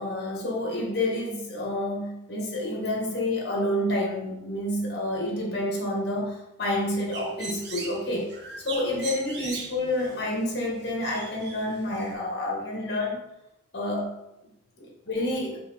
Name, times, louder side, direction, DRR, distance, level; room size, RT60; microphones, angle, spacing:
voice 1, 0.0-8.3 8.6-13.2 13.7-14.1 14.8-15.6, left 1 dB, 55° left, -1 dB, 1.7 m, -29 dB
Bird, 6.7-12.1, right 3 dB, 55° right, 1.0 m, -41 dB
5.4 x 3.7 x 5.7 m, 0.88 s
head